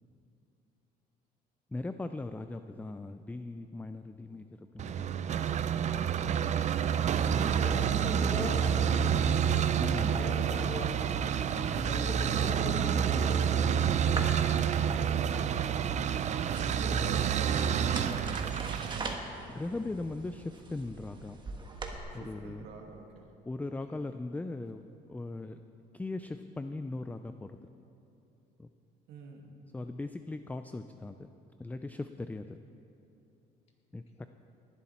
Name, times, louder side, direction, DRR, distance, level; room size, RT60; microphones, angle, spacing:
voice 1, 1.7-4.4 4.7-5.2 9.8-10.4 11.5-11.9 19.5-21.4 22.1-22.6 23.5-25.6 25.9-27.6 28.6-28.7 29.7-31.3 31.6-32.6 33.9-34.0, left 2 dB, 10° left, 9 dB, 0.4 m, -39 dB
sound 1, 4.8-19.1, right 8 dB, 45° right, 0.5 m, -28 dB
voice 2, 6.2-6.7 7.5-11.2 11.7-13.5 19.7-20.1 23.9-24.1, left 2 dB, 40° left, 1 dB, 2.4 m, -41 dB
sound 2, 14.0-22.0, right 2 dB, 25° right, 1.5 m, -42 dB
voice 3, 16.4-18.2 22.1-23.3 29.1-29.6, right 4 dB, 80° right, 2 dB, 1.9 m, -46 dB
19.0 x 11.5 x 4.3 m, 2.8 s
cardioid pair, 110°, 17 cm